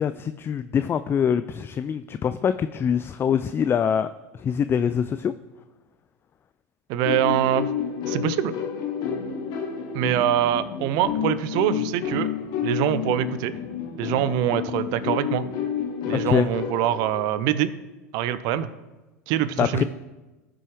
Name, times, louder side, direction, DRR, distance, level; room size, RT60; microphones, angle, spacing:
voice 1, 0.0-4.1 4.3-5.3 16.1-16.5 19.6-19.8, left 7 dB, 25° left, 12 dB, 0.4 m, -24 dB
voice 2, 6.9-7.7 8.1-8.5 9.9-12.3 12.6-13.5 14.0-15.4 16.1-17.7 18.1-18.7 19.3-19.8, right 11 dB, 55° right, 14 dB, 0.7 m, -24 dB
sound 1, 7.0-17.2, left 8 dB, 55° left, 1.5 m, -30 dB
17.5 x 6.2 x 3.3 m, 1.1 s
hypercardioid pair, 80°, 8 cm